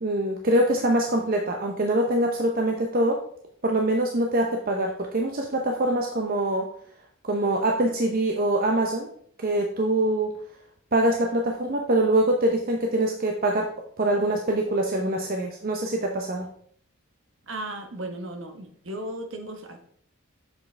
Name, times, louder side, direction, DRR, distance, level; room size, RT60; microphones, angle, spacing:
voice 1, 0.0-3.2 3.6-6.7 7.2-9.1 9.4-10.4 10.9-13.7 14.0-16.5, right 1 dB, 40° right, 2 dB, 0.7 m, -24 dB
voice 2, 17.4-19.8, right 1 dB, 60° right, 5 dB, 1.2 m, -35 dB
8.0 x 7.0 x 3.3 m, 0.63 s
head